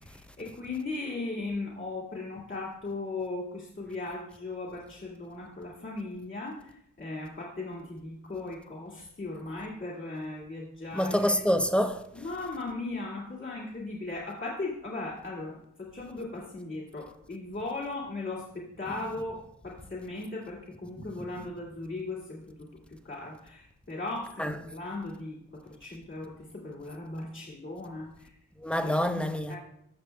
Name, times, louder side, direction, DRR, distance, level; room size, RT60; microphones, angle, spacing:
voice 1, 0.0-11.4 12.1-25.4 25.6-28.3 28.8-29.0 29.5-29.6, left 2 dB, 35° left, 2.2 m, -38 dB
voice 2, 10.9-12.0 21.0-21.1 24.4-24.5 28.6-29.6, equal, 5° left, 0.8 m, -26 dB
15.5 x 6.1 x 2.3 m
cardioid pair, 50°, 33 cm